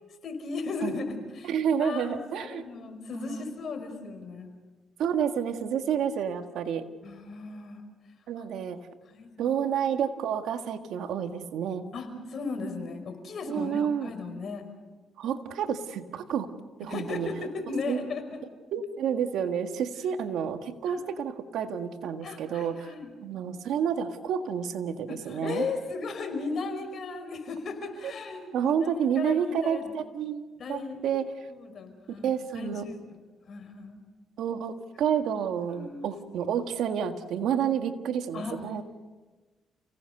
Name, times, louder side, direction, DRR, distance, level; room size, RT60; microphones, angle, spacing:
voice 1, 0.2-1.5 1.8-2.1 2.4-4.5 7.0-7.8 9.0-9.5 11.9-14.6 16.9-18.4 20.8-21.0 22.2-23.1 25.1-29.9 30.6-31.0 31.5-32.3 32.5-33.0 33.5-34.0 35.7-36.1 38.3-38.6, left 4 dB, 55° left, 6 dB, 5.1 m, -36 dB
voice 2, 1.4-2.6 3.1-3.4 5.0-6.9 8.3-8.8 9.4-11.9 13.5-14.1 15.2-16.5 16.8-17.3 17.9-18.0 18.7-22.9 23.2-25.7 28.0-28.1 28.5-30.4 30.7-31.5 32.2-32.9 34.4-38.8, right 8 dB, 80° right, 7 dB, 1.7 m, -29 dB
30.0 x 18.0 x 6.8 m, 1.3 s
cardioid pair, 90°, 0 cm